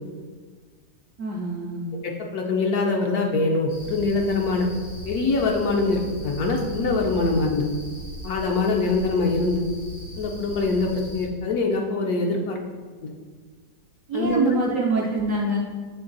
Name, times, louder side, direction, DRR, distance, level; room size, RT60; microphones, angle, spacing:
voice 1, 1.2-1.9 14.1-15.6, right 2 dB, 65° right, -2 dB, 0.8 m, -25 dB
voice 2, 2.0-4.7 5.0-7.7 8.2-9.6 10.2-12.6 13.0-13.1 14.1-14.5, left 3 dB, 65° left, 1 dB, 1.0 m, -24 dB
sound 1, 3.7-11.2, right 1 dB, 80° left, 2.1 m, -38 dB
7.8 x 3.2 x 3.9 m, 1.5 s
omnidirectional pair, 2.0 m